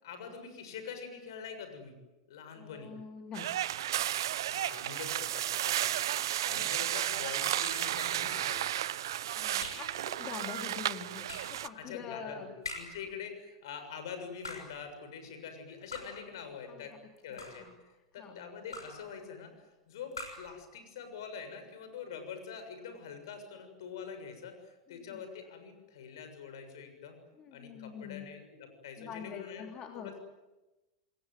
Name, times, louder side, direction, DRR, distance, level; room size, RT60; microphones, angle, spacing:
voice 1, 0.0-1.9 2.3-2.9 4.5-6.1 6.4-8.8 11.8-16.9 17.2-17.7 18.1-27.2 27.5-29.7 29.9-30.2, left 6 dB, 65° left, 8 dB, 6.9 m, -45 dB
voice 2, 2.6-3.5 6.5-6.7 9.3-12.5 16.6-17.0 17.3-17.7 18.2-18.4 24.9-25.2 27.4-28.3 29.0-30.1, left 7 dB, 35° left, 4 dB, 3.0 m, -45 dB
sound 1, 3.3-11.7, right 12 dB, 70° right, 0.8 m, -33 dB
sound 2, 7.7-8.1 9.6-10.0 11.3-11.6 12.6-13.1 14.3-14.8 15.9-16.3 17.2-17.8 18.7-19.1 20.1-20.6, left 3 dB, 85° left, 6.5 m, -44 dB
28.5 x 21.5 x 9.3 m, 1.1 s
hypercardioid pair, 95°, 2 cm